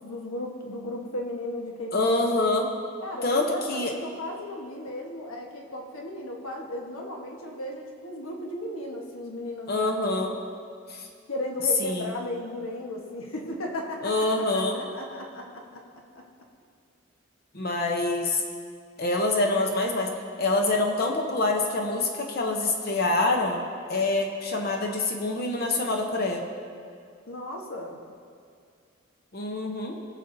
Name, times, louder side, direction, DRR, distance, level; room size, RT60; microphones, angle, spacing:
voice 1, 0.0-2.5 3.0-9.9 10.2-10.3 11.3-14.3 14.5-15.8 16.1-16.2 27.3-28.0, left 1 dB, 85° left, 0 dB, 1.3 m, -35 dB
voice 2, 1.9-2.7 3.2-3.9 9.7-10.4 10.9-11.1 11.8-12.1 14.0-14.8 17.5-18.4 19.0-20.1 20.4-23.6 23.9-26.4 29.3-30.0, left 2 dB, 45° left, 2 dB, 0.7 m, -26 dB
18.5 x 6.8 x 2.7 m, 2.2 s
head